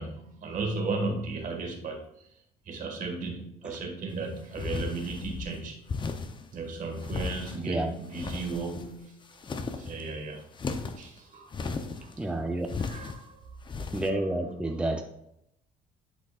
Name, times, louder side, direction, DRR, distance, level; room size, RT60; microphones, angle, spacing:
voice 1, 0.0-2.1 2.7-5.8 6.5-9.1 9.7-10.5 11.0-11.5 12.0-12.2 12.8-13.5 13.9-14.2, right 3 dB, 50° right, 2 dB, 1.8 m, -35 dB
sound 1, 4.5-5.5 5.9-6.4 7.0-7.7 8.1-9.0 9.3-10.0 10.5-11.1 11.5-12.1 12.7-13.2 13.7-14.1, left 4 dB, 30° left, 0.7 m, -35 dB
voice 2, 12.2-12.7 13.8-15.0, right 1 dB, 5° right, 3 dB, 0.6 m, -30 dB
11.5 x 5.0 x 2.5 m, 0.79 s
cardioid pair, 110°, 17 cm